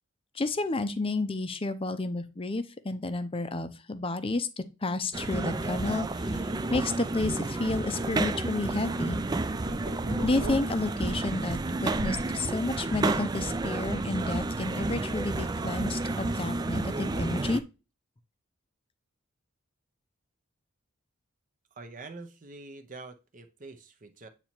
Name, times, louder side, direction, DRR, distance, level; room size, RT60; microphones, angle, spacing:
voice 1, 0.3-6.4 6.7-9.2 10.2-17.6, left 2 dB, 25° left, 0.6 m, -31 dB
sound 1, 5.1-17.6, right 2 dB, 20° right, 0.3 m, -31 dB
sound 2, 9.2-11.6 11.9-14.3, equal, 75° right, 1.5 m, -39 dB
voice 2, 21.7-24.3, right 3 dB, 40° right, 0.7 m, -45 dB
8.5 x 2.9 x 4.4 m
head